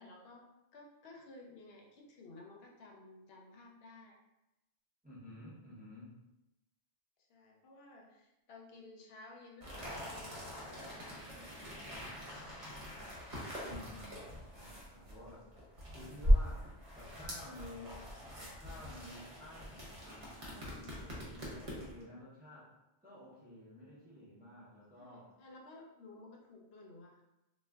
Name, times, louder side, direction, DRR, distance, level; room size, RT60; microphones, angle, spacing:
voice 1, 0.0-4.2 7.3-12.3 24.9-27.2, left 2 dB, 75° left, 0 dB, 0.8 m, -55 dB
voice 2, 5.0-6.2 13.6-15.5 15.9-22.7 23.0-25.3, left 1 dB, 10° right, -8 dB, 0.6 m, -52 dB
sound 1, 9.6-22.0, equal, 40° right, 0.8 m, -38 dB
2.4 x 2.2 x 3.3 m, 0.94 s
omnidirectional pair, 1.1 m